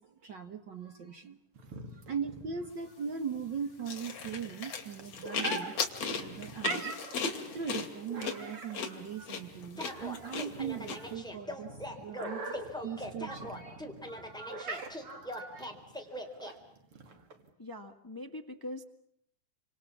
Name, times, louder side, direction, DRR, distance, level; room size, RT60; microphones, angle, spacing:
voice 1, 0.0-1.4 1.9-5.7 6.0-6.9 7.3-15.7, right 6 dB, 65° right, 7 dB, 1.1 m, -40 dB
sound 1, 1.6-17.5, right 4 dB, 45° right, 3.3 m, -44 dB
sound 2, 3.9-11.0, left 5 dB, 50° left, 3.6 m, -36 dB
sound 3, 9.8-16.5, equal, ahead, 3.4 m, -41 dB
voice 2, 17.6-18.8, left 1 dB, 30° left, 6 dB, 0.4 m, -42 dB
29.0 x 26.5 x 7.2 m, 0.74 s
omnidirectional pair, 3.8 m